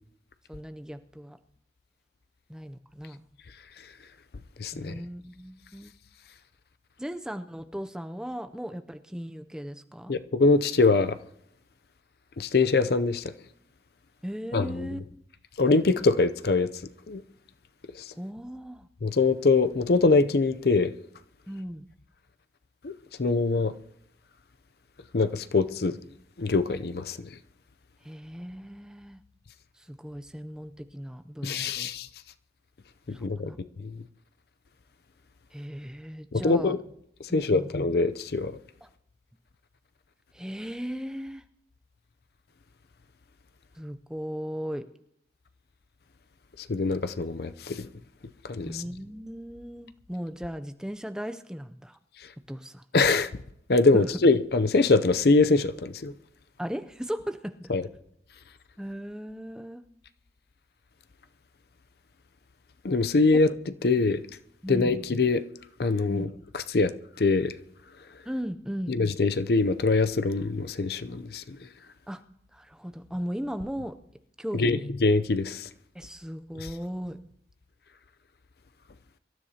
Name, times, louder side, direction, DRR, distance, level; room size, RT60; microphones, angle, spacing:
voice 1, 0.5-1.4 2.5-3.2 4.7-5.9 7.0-10.2 14.2-15.2 18.2-18.9 21.5-21.8 28.0-29.2 29.8-31.9 33.1-33.6 35.5-36.8 37.3-37.7 38.8-38.9 40.3-41.4 43.8-44.9 48.6-52.0 52.5-52.8 53.9-54.1 56.6-57.7 58.8-59.8 64.6-65.0 66.1-66.3 68.3-68.9 72.1-72.2 72.5-74.0 74.4-74.9 75.9-77.2, equal, 5° right, 0.5 m, -37 dB
voice 2, 4.6-4.9 10.1-11.2 12.4-13.2 14.5-14.9 15.6-16.7 17.1-17.2 19.0-20.9 22.8-22.9 23.2-23.7 25.1-26.0 26.4-27.2 31.4-32.1 33.1-33.5 33.8-34.0 36.3-36.8 37.3-38.5 46.7-47.9 48.4-48.8 52.9-53.3 53.7-56.1 57.7-57.8 62.8-63.5 63.8-64.2 64.7-65.4 65.8-67.5 68.9-71.6 74.5-75.7, left 3 dB, 60° left, 0.6 m, -23 dB
25.0 x 13.0 x 2.8 m
head